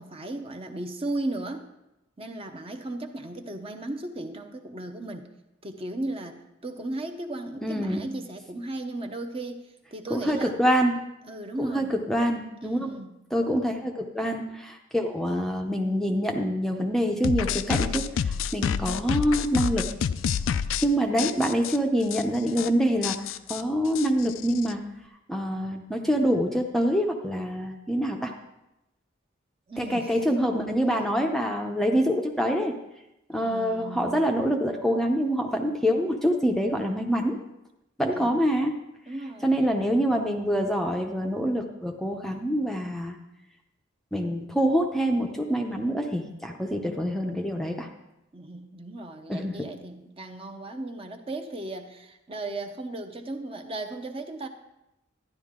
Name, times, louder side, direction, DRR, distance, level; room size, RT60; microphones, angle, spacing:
voice 1, 0.0-1.7 2.2-5.3 5.6-10.6 11.3-11.9 12.6-13.1 29.7-30.1 33.3-34.2 38.1-38.5 39.1-39.5 48.3-54.5, right 2 dB, 30° right, 5 dB, 0.8 m, -36 dB
voice 2, 7.6-8.0 10.1-11.0 11.6-13.0 13.3-19.9 20.8-23.2 23.5-24.8 25.3-28.3 29.8-32.8 33.3-37.4 38.0-38.8 39.4-43.2 44.1-47.9 49.3-49.6, equal, ahead, 2 dB, 0.6 m, -26 dB
sound 1, 17.2-20.9 21.2-21.8 22.1-22.2 22.5-22.7 23.0-24.7, left 7 dB, 85° left, 0.4 m, -28 dB
12.0 x 10.0 x 3.7 m, 0.90 s
head